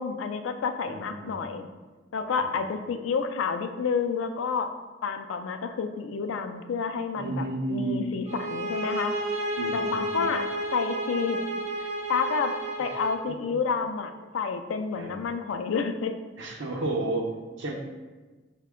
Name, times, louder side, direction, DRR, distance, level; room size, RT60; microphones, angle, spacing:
voice 1, 0.0-1.7 2.1-4.7 5.0-9.1 9.7-10.5 10.7-11.4 11.8-16.2, left 5 dB, 90° left, 8 dB, 0.3 m, -29 dB
voice 2, 0.9-1.4 2.3-2.7 7.1-8.2 9.6-10.2 14.9-15.2 16.4-17.7, right 2 dB, 80° right, 0 dB, 0.7 m, -32 dB
sound 1, 8.3-13.2, right 1 dB, 30° right, 0.4 m, -31 dB
4.9 x 2.2 x 3.6 m, 1.3 s
head